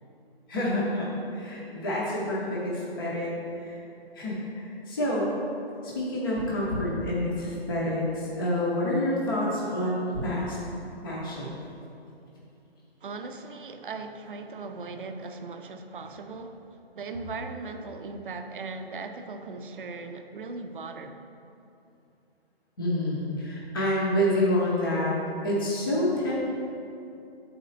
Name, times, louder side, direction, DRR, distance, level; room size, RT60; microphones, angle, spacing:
voice 1, 0.5-3.3 3.6-3.8 4.1-5.3 5.9-10.6 11.0-11.6 22.8-25.1 25.4-26.5, left 1 dB, 20° left, -6 dB, 0.6 m, -28 dB
voice 2, 13.0-21.2, right 3 dB, 55° right, 7 dB, 0.5 m, -38 dB
7.5 x 4.2 x 3.9 m, 2.8 s
hypercardioid pair, 165°, 32 cm